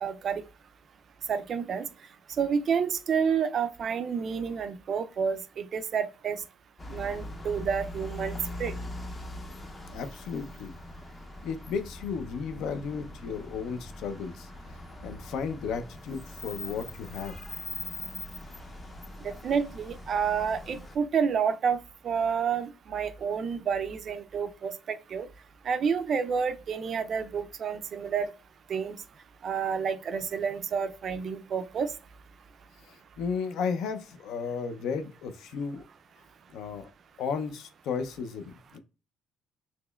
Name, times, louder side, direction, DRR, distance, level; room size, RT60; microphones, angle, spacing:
voice 1, 0.0-0.4 1.3-1.9 2.4-6.4 6.9-8.7 19.2-21.8 22.0-25.3 25.7-28.3 28.7-29.0 29.4-31.9, right 6 dB, 40° right, 0.3 m, -29 dB
sound 1, 6.8-21.0, left 1 dB, 20° left, 0.5 m, -42 dB
voice 2, 9.9-10.7 11.4-14.5 15.0-17.4 32.9-35.8 36.5-36.9 37.2-38.8, left 6 dB, 70° left, 0.5 m, -34 dB
4.1 x 2.9 x 2.2 m
cardioid pair, 150°, 0 cm